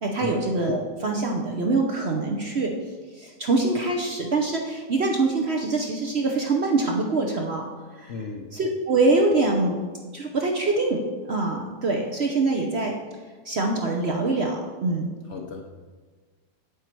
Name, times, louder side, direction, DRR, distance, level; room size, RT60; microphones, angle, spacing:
voice 1, 0.0-2.7 3.2-7.7 8.0-8.1 8.5-9.8 10.1-11.0 11.3-12.9 13.4-15.2, right 3 dB, 50° right, 1 dB, 0.8 m, -24 dB
voice 2, 8.1-8.4 15.3-15.7, left 4 dB, 55° left, 2 dB, 0.9 m, -35 dB
8.3 x 8.0 x 4.5 m, 1.4 s
omnidirectional pair, 1.8 m